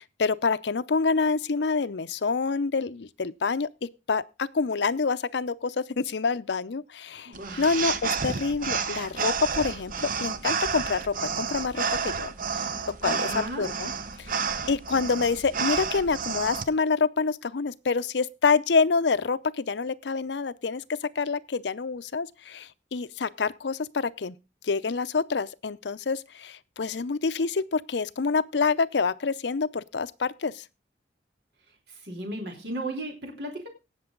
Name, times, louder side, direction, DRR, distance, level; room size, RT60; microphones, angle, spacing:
voice 1, 0.0-12.7 13.0-13.9 14.2-14.4 14.7-24.3 24.6-30.6, left 4 dB, 75° left, 0.6 m, -27 dB
voice 2, 7.2-7.7 8.9-9.1 13.0-13.7 31.9-33.7, right 1 dB, 65° right, 3.3 m, -36 dB
sound 1, 7.3-16.6, right 6 dB, 50° right, 0.9 m, -30 dB
18.0 x 6.8 x 3.8 m
head